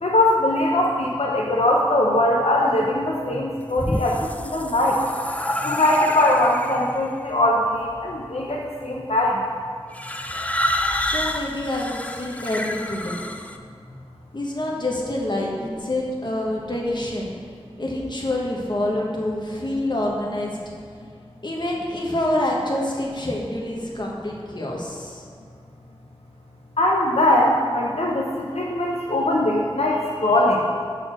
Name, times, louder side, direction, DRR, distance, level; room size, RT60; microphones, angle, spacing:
voice 1, 0.0-5.0 5.6-9.4 26.8-30.7, left 1 dB, 90° left, -2 dB, 0.7 m, -21 dB
sound 1, 3.5-7.0 7.9-8.3 9.9-13.6, left 1 dB, 15° left, 0.4 m, -28 dB
voice 2, 11.0-13.2 14.3-17.3 17.8-20.6 21.4-25.2, left 1 dB, 50° left, -2 dB, 1.3 m, -27 dB
6.3 x 4.2 x 6.3 m, 2.2 s
wide cardioid pair, 50°, 10 cm